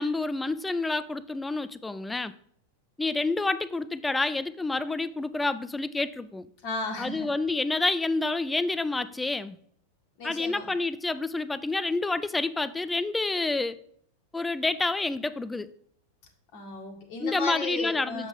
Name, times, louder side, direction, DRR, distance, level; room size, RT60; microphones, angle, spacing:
voice 1, 0.0-2.3 3.0-6.5 7.0-9.6 10.2-13.8 14.3-15.7 17.2-18.3, left 3 dB, 10° left, 14 dB, 0.3 m, -28 dB
voice 2, 6.6-7.3 10.2-10.7 16.5-18.3, left 3 dB, 45° left, 2 dB, 1.6 m, -34 dB
7.3 x 6.1 x 3.7 m, 0.65 s
figure-of-eight pair, 90°, 0 cm